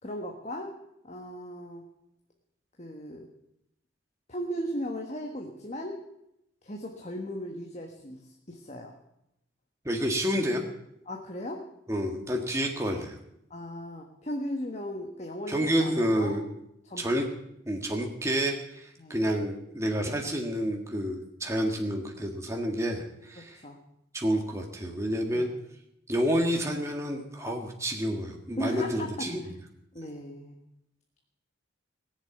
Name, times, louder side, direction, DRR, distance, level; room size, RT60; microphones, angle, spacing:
voice 1, 0.0-0.7 1.0-1.9 2.8-3.3 4.3-6.0 6.6-8.9 11.0-11.6 13.5-16.4 16.8-17.3 19.0-19.2 23.4-23.8 25.3-25.6 28.6-29.3 29.9-30.6, equal, 35° left, 2 dB, 1.6 m, -37 dB
voice 2, 9.9-10.6 11.9-13.2 15.5-16.4 17.0-17.3 17.7-23.6 24.1-25.5 26.1-29.4, equal, 15° right, 1 dB, 1.7 m, -29 dB
19.5 x 7.4 x 9.3 m, 0.80 s
head